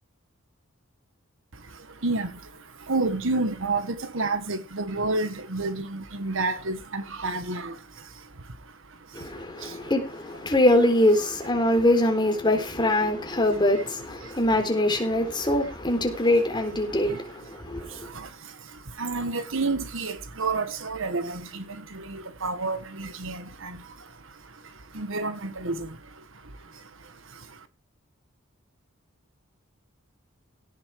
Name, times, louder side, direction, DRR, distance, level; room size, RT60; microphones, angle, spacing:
voice 1, 1.5-9.9 13.7-13.9 14.2-14.4 14.9-15.1 15.4-15.7 16.2-16.3 16.8-27.7, right 3 dB, 65° right, 1.6 m, -32 dB
voice 2, 9.1-18.1, left 1 dB, 20° left, 3.9 m, -23 dB
17.5 x 7.3 x 4.8 m
head